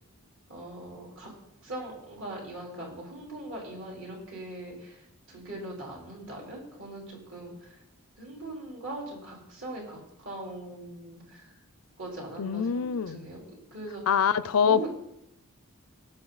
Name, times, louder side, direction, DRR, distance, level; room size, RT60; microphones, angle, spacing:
voice 1, 0.5-1.3 1.6-7.8 8.2-11.5 12.0-13.4 13.7-14.2 14.6-14.9, right 1 dB, 60° right, -2 dB, 4.2 m, -41 dB
voice 2, 12.4-13.2 14.1-14.9, left 7 dB, 75° left, 17 dB, 0.5 m, -24 dB
19.0 x 7.6 x 4.1 m, 0.82 s
head